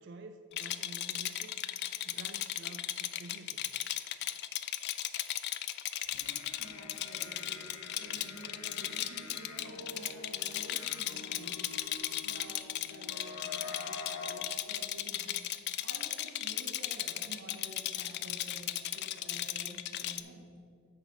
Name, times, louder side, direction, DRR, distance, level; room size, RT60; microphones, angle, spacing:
voice 1, 0.0-1.6 2.0-3.7, right 2 dB, 50° right, 7 dB, 0.3 m, -50 dB
Rattle, 0.5-20.2, left 13 dB, 50° left, 0.3 m, -36 dB
sound 1, 6.1-14.5, left 3 dB, 80° left, 0.7 m, -47 dB
voice 2, 6.6-11.7 12.2-15.3 15.8-20.6, right 1 dB, 70° right, -3 dB, 1.4 m, -51 dB
8.9 x 3.9 x 6.1 m, 2.2 s
head